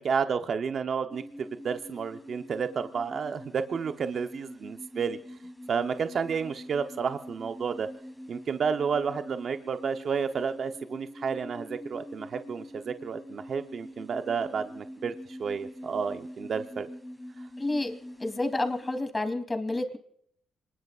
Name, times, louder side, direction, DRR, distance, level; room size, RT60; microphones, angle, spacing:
voice 1, 0.0-5.2 5.7-7.9 8.3-16.9, right 6 dB, 55° right, 7 dB, 0.9 m, -31 dB
sound 1, 1.1-19.0, equal, 5° left, 3.4 m, -44 dB
voice 2, 17.6-20.0, left 2 dB, 20° left, 6 dB, 3.2 m, -30 dB
26.0 x 20.5 x 2.5 m, 0.67 s
cardioid pair, 70°, 0 cm